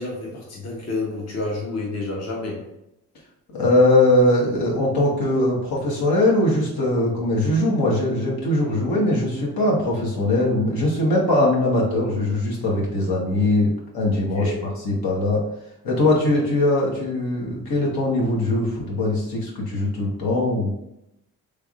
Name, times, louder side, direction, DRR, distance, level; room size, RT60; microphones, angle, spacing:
voice 1, 0.0-2.7 14.1-14.7, left 2 dB, 40° left, -3 dB, 1.0 m, -30 dB
voice 2, 3.5-14.5 14.8-15.4 15.8-20.7, left 1 dB, 70° left, -3 dB, 1.3 m, -21 dB
3.3 x 3.2 x 2.5 m, 0.82 s
cardioid pair, 65°, 38 cm